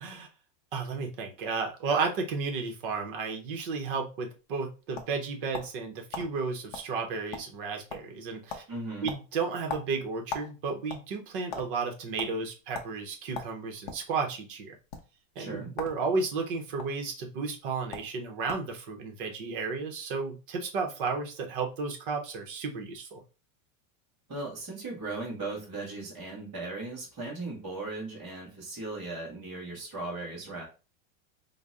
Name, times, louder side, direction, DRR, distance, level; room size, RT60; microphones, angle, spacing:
voice 1, 0.7-8.6 9.0-14.8 15.4-23.2, right 4 dB, 40° right, 3 dB, 0.7 m, -33 dB
sound 1, 4.4-5.8 6.1-6.3 6.7-6.9 7.2-7.6 7.9-8.2 8.5-8.7 9.1-10.5 10.8-11.7 12.2-12.3 12.7-12.9 13.3-14.1 14.8-15.0 15.7-16.0 16.3-16.9 17.6-17.7 17.9-18.1 18.5-18.7, left 5 dB, 40° left, 0.5 m, -38 dB
voice 2, 8.7-9.1 15.4-15.7 24.3-30.6, right 2 dB, 10° right, -10 dB, 0.3 m, -37 dB
3.8 x 2.0 x 3.5 m, 0.33 s
supercardioid pair, 180°, 40 cm